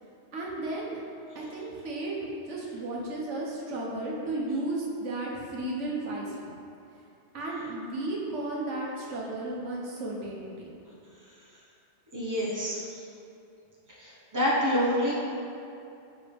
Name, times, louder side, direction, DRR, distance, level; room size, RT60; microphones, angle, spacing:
voice 1, 0.3-1.0 1.3-6.5 7.3-10.5, right 2 dB, 90° right, -3 dB, 1.3 m, -34 dB
voice 2, 12.1-12.8 14.0-15.1, equal, 15° right, -6 dB, 1.0 m, -27 dB
9.2 x 3.5 x 3.4 m, 2.6 s
omnidirectional pair, 1.2 m